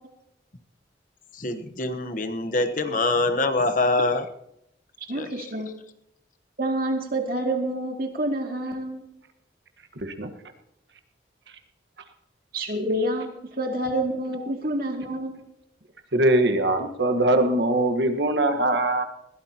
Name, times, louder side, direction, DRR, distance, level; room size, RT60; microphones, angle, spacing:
voice 1, 1.3-4.3 5.1-5.5, left 2 dB, 45° left, 8 dB, 1.0 m, -24 dB
voice 2, 5.1-5.7 6.6-9.0 12.5-13.3 13.6-15.3, right 1 dB, 50° right, 2 dB, 2.5 m, -27 dB
voice 3, 10.0-10.3 16.1-19.0, right 1 dB, 70° right, 7 dB, 1.4 m, -22 dB
21.0 x 16.0 x 2.9 m, 0.81 s
head